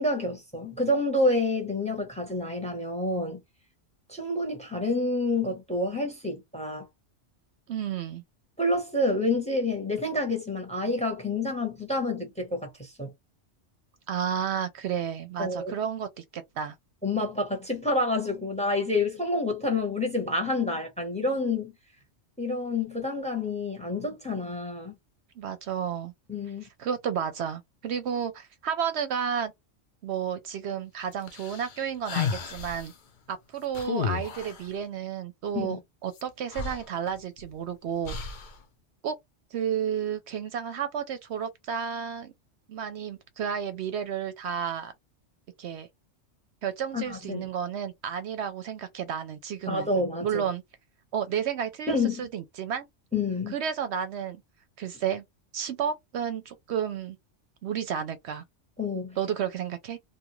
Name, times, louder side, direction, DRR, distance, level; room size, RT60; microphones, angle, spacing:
voice 1, 0.0-3.4 4.1-6.9 8.6-13.1 15.4-15.7 17.0-21.7 22.4-24.9 26.3-26.7 35.5-35.8 46.9-47.5 49.7-50.5 51.9-52.2 53.1-53.6 58.8-59.2, left 2 dB, 5° left, 0.8 m, -28 dB
voice 2, 7.7-8.2 14.1-16.8 25.4-26.1 26.8-29.5 30.0-32.9 33.3-38.2 39.0-39.2 39.5-42.3 42.7-44.9 45.6-45.9 46.6-49.9 50.2-50.6 51.1-52.9 53.5-54.4 54.8-55.2 55.5-57.2 57.6-58.4 59.2-60.0, right 8 dB, 70° right, 0.8 m, -32 dB
sound 1, 31.3-32.9 33.7-34.7 36.2-36.3 36.5-37.5 38.0-38.6, left 6 dB, 50° left, 0.6 m, -33 dB
2.6 x 2.4 x 3.0 m
omnidirectional pair, 1.2 m